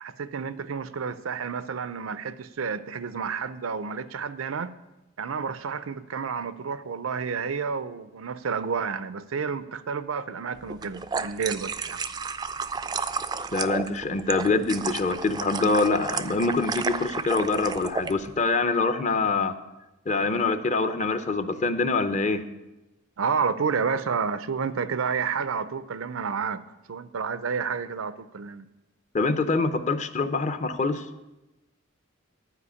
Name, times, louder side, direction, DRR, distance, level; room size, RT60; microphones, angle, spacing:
voice 1, 0.0-4.8 5.2-12.0 23.2-28.7, right 6 dB, 90° right, 0.5 m, -30 dB
sound 1, 10.7-18.1, right 5 dB, 20° right, 0.3 m, -32 dB
voice 2, 13.5-19.5 20.1-22.4 29.1-31.0, left 3 dB, 35° left, 0.6 m, -25 dB
11.5 x 5.0 x 8.3 m
head